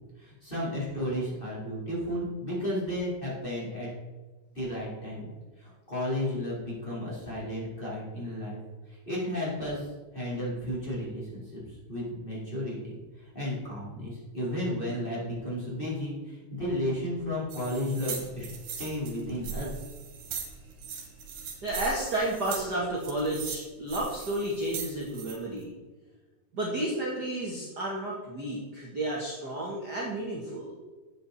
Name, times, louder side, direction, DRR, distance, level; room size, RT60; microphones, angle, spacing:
voice 1, 0.2-3.9 4.5-5.3 5.6-8.6 8.9-9.9 10.1-13.0 13.3-18.5 18.8-19.7, left 1 dB, 15° left, -7 dB, 4.3 m, -33 dB
sound 1, 17.5-25.3, right 6 dB, 85° right, 3.4 m, -40 dB
voice 2, 21.6-25.7 26.5-30.8, right 1 dB, 35° right, -4 dB, 2.0 m, -32 dB
13.0 x 8.4 x 4.3 m, 1.3 s
omnidirectional pair, 3.6 m